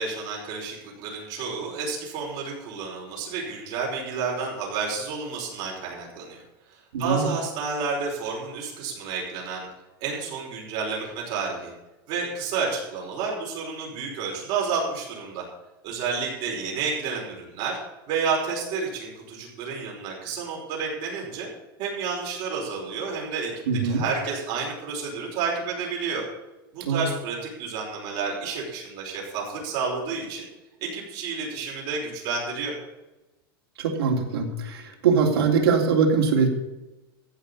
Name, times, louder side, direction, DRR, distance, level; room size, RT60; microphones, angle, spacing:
voice 1, 0.0-6.4 7.0-9.7 10.0-11.7 12.1-15.4 15.8-17.8 18.1-21.5 21.8-26.2 26.7-30.5 30.8-32.7, right 5 dB, 40° right, -2 dB, 5.2 m, -30 dB
voice 2, 6.9-7.3 23.7-24.0 26.8-27.1 33.8-36.5, right 5 dB, 90° right, 1 dB, 3.4 m, -22 dB
15.0 x 5.9 x 8.6 m, 1.0 s
supercardioid pair, 165°, 13 cm